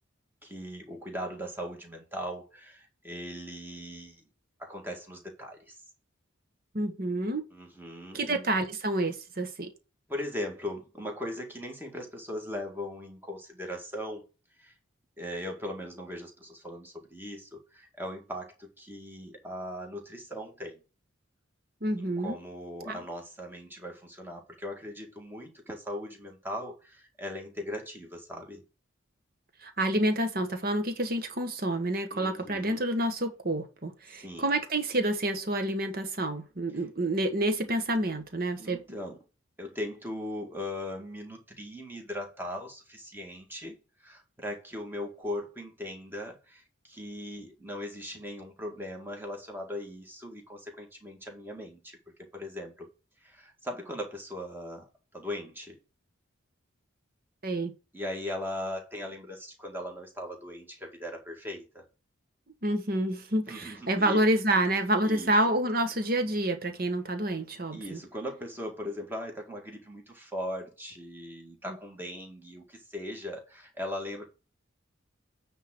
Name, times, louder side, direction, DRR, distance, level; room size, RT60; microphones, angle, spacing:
voice 1, 0.4-4.2 4.6-5.7 7.5-8.4 10.1-14.2 14.6-14.7 15.2-20.8 22.0-28.6 32.1-32.8 34.1-34.5 38.6-39.2 39.6-52.0 52.3-52.9 53.2-54.8 55.1-55.8 57.9-61.8 63.5-64.2 65.0-65.3 67.7-74.2, left 1 dB, 10° right, 1.9 m, -39 dB
voice 2, 6.7-7.4 8.1-9.7 21.8-22.4 22.8-23.0 29.6-38.8 57.4-57.7 62.6-68.0 71.7-71.8, right 1 dB, 45° right, 1.3 m, -28 dB
9.2 x 3.7 x 6.0 m
head